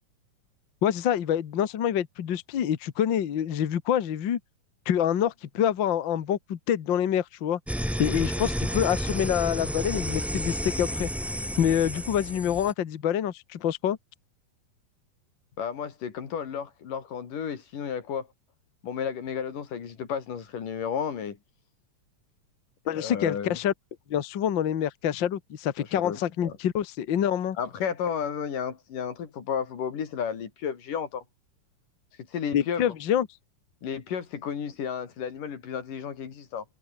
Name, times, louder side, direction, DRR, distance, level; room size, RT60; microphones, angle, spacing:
voice 1, 0.8-4.4 4.8-7.6 8.0-14.0 22.9-23.7 24.1-27.6 32.5-33.3, left 9 dB, 50° left, 1.6 m, -26 dB
sound 1, 7.7-12.7, equal, ahead, 1.7 m, -31 dB
voice 2, 15.6-18.3 18.8-21.4 22.9-23.6 25.8-26.5 27.6-31.2 32.3-32.9 33.8-36.6, left 7 dB, 85° left, 4.6 m, -33 dB
omnidirectional pair, 3.7 m